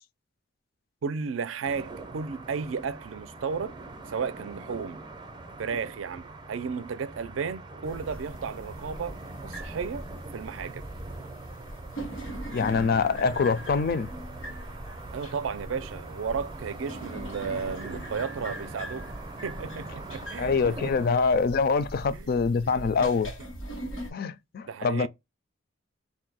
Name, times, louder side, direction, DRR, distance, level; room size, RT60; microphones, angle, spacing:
voice 1, 1.0-3.7 4.1-5.0 5.6-9.2 9.4-10.1 10.3-10.8 15.1-19.1 19.4-21.0 22.1-22.3 22.7-22.9 24.6-25.1, right 5 dB, 85° right, 0.4 m, -34 dB
sound 1, 1.6-21.1, right 2 dB, 25° right, 0.5 m, -43 dB
sound 2, 7.8-24.1, right 1 dB, 90° left, 1.4 m, -41 dB
voice 2, 12.5-14.1 20.4-23.3 24.1-25.1, left 5 dB, 50° left, 0.4 m, -25 dB
2.6 x 2.2 x 4.0 m
head